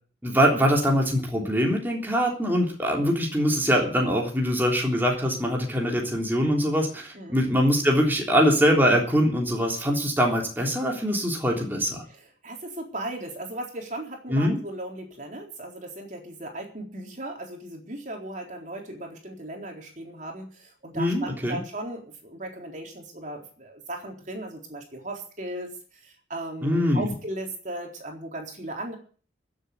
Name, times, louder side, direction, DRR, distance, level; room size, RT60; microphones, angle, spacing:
voice 1, 0.2-12.0 14.3-14.6 20.9-21.6 26.6-27.1, equal, 10° right, -1 dB, 3.4 m, -23 dB
voice 2, 12.1-29.0, right 1 dB, 45° right, 2 dB, 4.0 m, -37 dB
15.5 x 7.9 x 9.6 m, 0.41 s
head